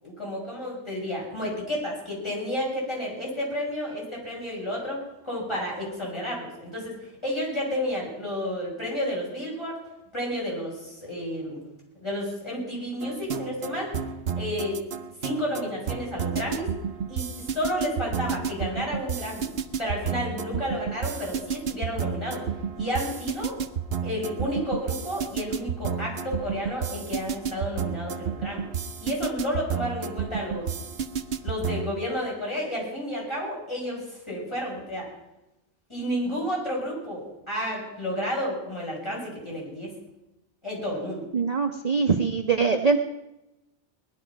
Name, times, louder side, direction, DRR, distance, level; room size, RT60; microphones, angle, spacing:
voice 1, 0.0-7.0 7.2-9.8 10.1-11.6 12.0-13.9 14.4-14.8 15.2-16.7 17.1-19.5 19.8-22.4 22.8-23.6 24.0-28.6 29.0-30.7 31.4-35.1 35.9-39.9 40.6-41.2, equal, 25° left, -3 dB, 6.4 m, -31 dB
sound 1, 13.0-31.9, right 7 dB, 65° right, 1.0 m, -31 dB
voice 2, 41.3-43.0, right 5 dB, 40° right, 5 dB, 0.9 m, -23 dB
19.5 x 11.5 x 5.8 m, 0.94 s
omnidirectional pair, 1.2 m